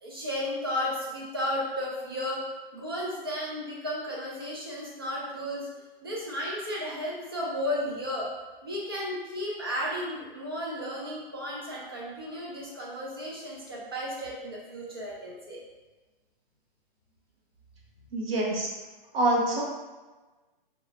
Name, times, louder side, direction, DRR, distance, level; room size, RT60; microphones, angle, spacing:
voice 1, 0.0-5.7 6.0-8.3 8.6-15.6, left 1 dB, 25° right, -5 dB, 0.4 m, -34 dB
voice 2, 18.1-18.7 19.1-19.6, right 1 dB, 85° right, -3 dB, 1.0 m, -25 dB
2.7 x 2.3 x 2.7 m, 1.2 s
hypercardioid pair, 175°, 29 cm